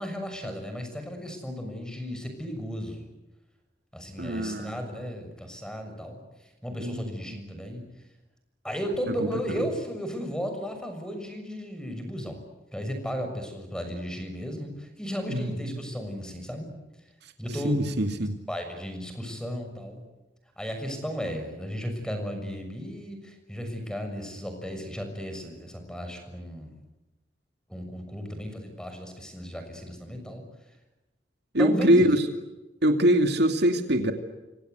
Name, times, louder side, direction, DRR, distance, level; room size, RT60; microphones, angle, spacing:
voice 1, 0.0-3.1 3.9-7.9 8.6-12.4 12.7-16.7 17.4-17.8 18.5-20.0 20.6-26.8 27.7-30.4 31.6-32.1, equal, 5° left, 6 dB, 6.6 m, -35 dB
voice 2, 4.2-4.7 6.8-7.4 9.2-9.3 15.3-15.8 17.6-18.4 31.5-32.2 32.8-34.1, right 1 dB, 65° right, 5 dB, 2.6 m, -23 dB
28.0 x 25.5 x 8.2 m, 1.1 s
head